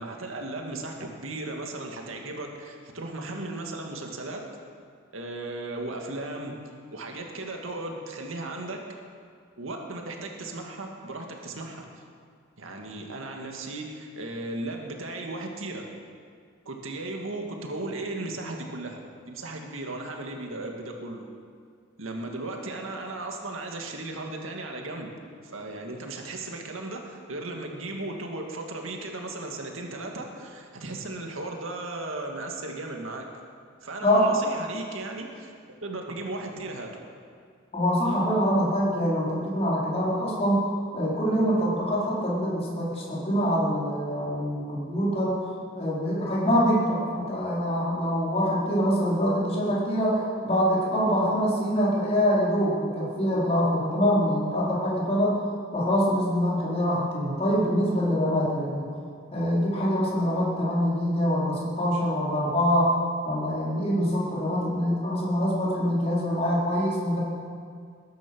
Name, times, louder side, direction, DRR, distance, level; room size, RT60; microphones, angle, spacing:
voice 1, 0.0-4.4 5.1-6.6 6.9-8.8 9.6-11.9 12.6-15.9 16.7-21.3 22.0-25.1 25.5-33.3 33.8-36.9, right 2 dB, 75° right, 2 dB, 2.1 m, -36 dB
voice 2, 34.0-34.5 37.7-40.7 40.9-45.5 45.7-55.4 55.7-58.9 59.3-62.9 63.2-67.2, equal, 30° left, -7 dB, 4.6 m, -25 dB
21.0 x 10.5 x 6.2 m, 2.2 s
head